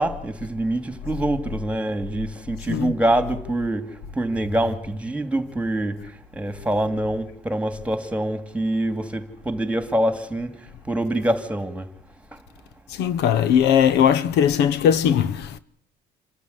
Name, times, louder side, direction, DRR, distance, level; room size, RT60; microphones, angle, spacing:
voice 1, 0.0-3.9 4.2-6.0 6.3-10.5 10.9-11.9, right 1 dB, 5° right, 2.7 m, -25 dB
voice 2, 12.9-15.6, left 8 dB, 80° left, 1.2 m, -19 dB
27.5 x 13.0 x 9.7 m
cardioid pair, 110°, 17 cm